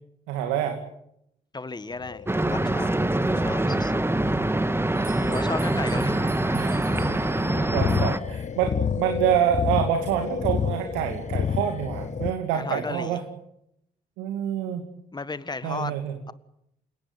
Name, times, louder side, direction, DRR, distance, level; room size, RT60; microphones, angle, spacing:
voice 1, 0.3-0.8 6.5-6.8 7.1-7.4 7.7-13.2 14.2-14.8 15.6-16.1, right 10 dB, 80° right, 5 dB, 2.5 m, -27 dB
voice 2, 1.5-3.0 3.4-4.0 5.3-6.4 12.5-13.2 15.1-16.0, left 3 dB, 20° left, 14 dB, 1.6 m, -34 dB
sound 1, 1.9-12.3, left 7 dB, 40° left, 1.3 m, -30 dB
sound 2, 2.3-8.2, right 1 dB, 10° right, 1.7 m, -24 dB
sound 3, 4.9-7.8, right 5 dB, 45° right, 5.5 m, -43 dB
28.5 x 17.5 x 9.8 m, 0.80 s
hypercardioid pair, 45°, 19 cm